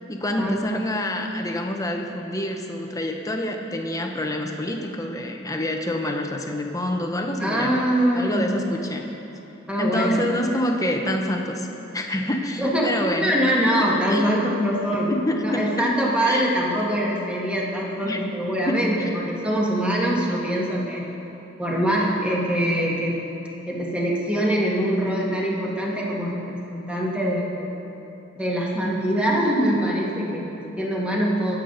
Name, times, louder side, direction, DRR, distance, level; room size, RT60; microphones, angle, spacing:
voice 1, 0.1-9.0 9.8-11.7 11.9-14.2 15.1-15.9 16.3-16.5 18.0-18.3 18.6-19.1, left 1 dB, 15° left, 3 dB, 1.1 m, -27 dB
voice 2, 7.4-8.6 9.7-10.2 12.6-12.9 13.2-21.0 21.6-23.2 23.7-27.7 28.4-31.6, equal, 5° right, -4 dB, 2.0 m, -23 dB
24.5 x 8.5 x 4.1 m, 3.0 s
head